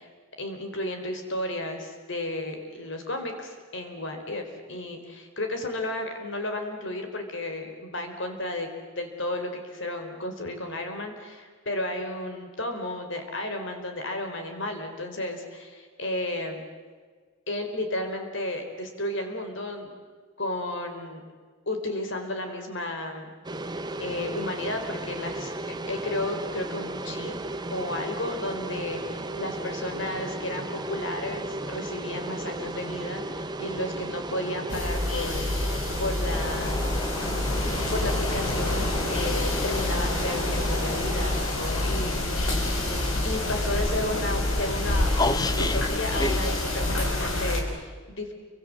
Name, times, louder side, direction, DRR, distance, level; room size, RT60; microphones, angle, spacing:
voice 1, 0.4-8.7 9.0-16.6 17.5-19.9 20.4-21.2 21.7-23.3 23.7-27.3 27.7-36.8 37.9-42.5 43.2-45.1 45.6-48.3, left 1 dB, 60° left, 5 dB, 4.1 m, -33 dB
sound 1, 23.4-41.4, right 2 dB, 20° right, 1.1 m, -35 dB
sound 2, 34.7-47.6, left 1 dB, 80° left, 5.9 m, -27 dB
sound 3, 36.3-47.1, left 2 dB, 20° left, 0.8 m, -35 dB
30.0 x 25.5 x 7.6 m, 1.5 s
head